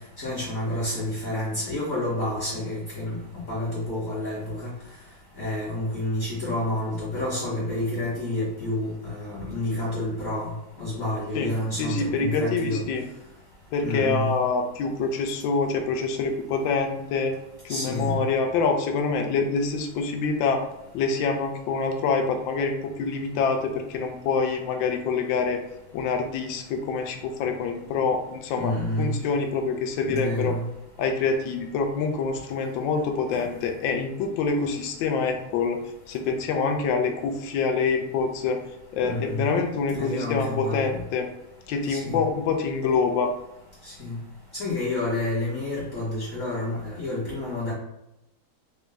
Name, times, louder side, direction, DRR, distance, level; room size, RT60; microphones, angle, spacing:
voice 1, 0.2-3.2 3.5-4.7 5.4-10.5 10.8-12.8 13.8-14.3 17.7-18.2 28.5-29.2 30.1-30.7 39.0-39.5 39.9-41.0 41.9-42.2 43.8-44.2 44.5-47.7, left 1 dB, 45° left, -8 dB, 1.3 m, -29 dB
voice 2, 11.3-13.1 13.7-17.3 17.6-20.6 20.9-25.6 25.9-30.5 31.0-35.8 36.1-38.6 38.9-41.3 41.7-43.3, left 4 dB, 70° left, 4 dB, 1.3 m, -26 dB
4.1 x 2.3 x 3.8 m, 0.90 s
omnidirectional pair, 2.3 m